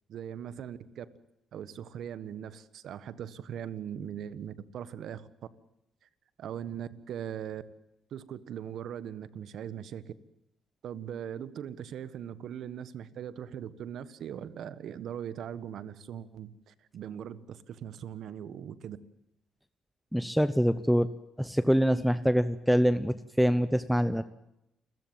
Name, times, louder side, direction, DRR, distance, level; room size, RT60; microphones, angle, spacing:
voice 1, 0.1-1.1 1.5-5.3 6.4-7.6 8.1-10.1 10.8-19.0, right 9 dB, 70° right, 1.4 m, -40 dB
voice 2, 20.1-21.1 21.4-24.2, equal, ahead, 0.9 m, -25 dB
28.5 x 14.5 x 9.1 m
cardioid pair, 90°, 0 cm